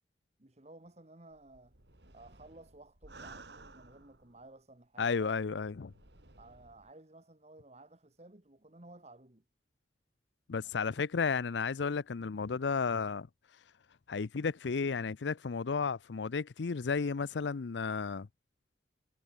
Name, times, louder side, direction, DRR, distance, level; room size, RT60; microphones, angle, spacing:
voice 1, 0.4-1.7 2.1-5.4 6.4-9.4 10.8-11.0, right 2 dB, 40° right, 1.6 m, -55 dB
sound 1, 1.3-4.5 5.1-6.9, right 3 dB, 75° right, 3.7 m, -55 dB
voice 2, 5.0-5.9 10.5-13.3 14.1-18.3, left 5 dB, 85° left, 0.6 m, -33 dB
head